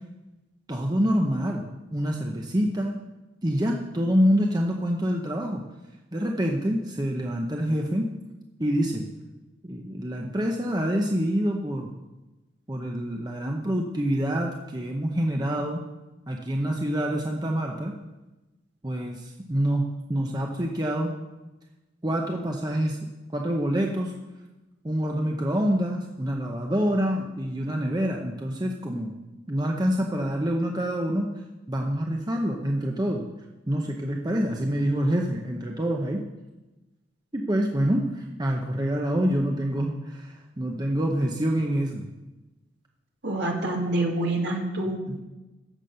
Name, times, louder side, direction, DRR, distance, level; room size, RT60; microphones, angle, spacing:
voice 1, 0.7-3.0 3.4-5.6 6.1-8.1 8.6-9.1 9.6-11.9 12.7-15.8 16.3-17.9 18.8-21.1 22.0-23.0 23.3-24.1 24.8-29.1 29.5-31.3 31.7-33.3 33.7-36.2 37.3-42.1 45.1-45.2, equal, 20° right, 1 dB, 0.7 m, -26 dB
voice 2, 43.2-45.2, right 2 dB, 55° right, 1 dB, 1.9 m, -27 dB
15.0 x 6.0 x 6.7 m, 1.1 s
head